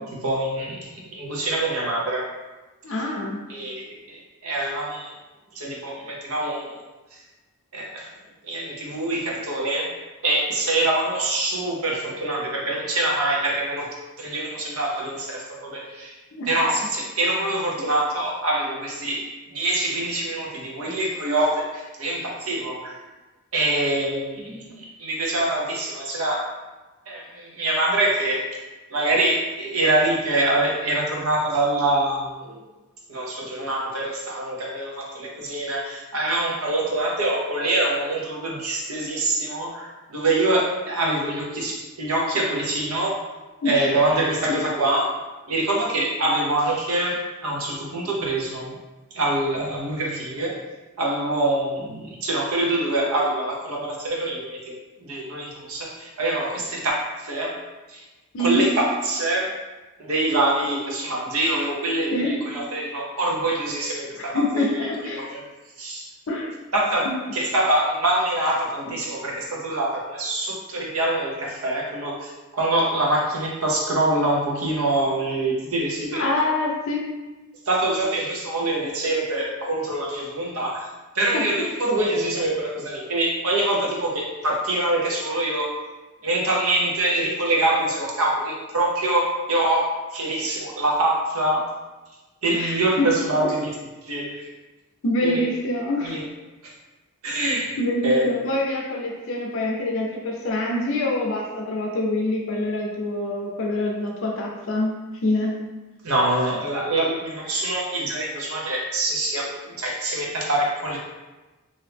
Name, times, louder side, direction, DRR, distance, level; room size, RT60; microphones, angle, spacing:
voice 1, 0.0-2.3 3.5-5.1 5.5-6.8 7.1-7.2 7.7-8.1 8.4-9.9 10.2-13.9 14.2-16.1 16.5-23.0 23.5-26.5 27.1-28.5 28.9-32.6 33.1-43.2 43.6-45.1 45.5-48.8 49.1-50.6 51.0-57.6 57.9-58.0 58.4-59.5 60.0-65.4 65.8-66.1 66.7-76.3 77.6-80.8 81.1-85.7 86.2-91.7 92.4-93.7 94.0-94.5 95.2-95.4 96.0-96.2 97.2-97.7 98.0-98.3 106.0-111.0, right 2 dB, 75° right, -2 dB, 0.8 m, -25 dB
voice 2, 2.8-3.4 16.3-16.5 43.6-43.9 44.5-44.6 58.3-58.7 62.1-62.4 64.2-65.2 66.3-66.5 68.9-69.0 76.1-77.0 81.3-81.7 92.5-93.5 95.0-96.2 97.8-105.6, left 1 dB, 60° left, -1 dB, 0.5 m, -25 dB
2.9 x 2.6 x 3.3 m, 1.2 s
head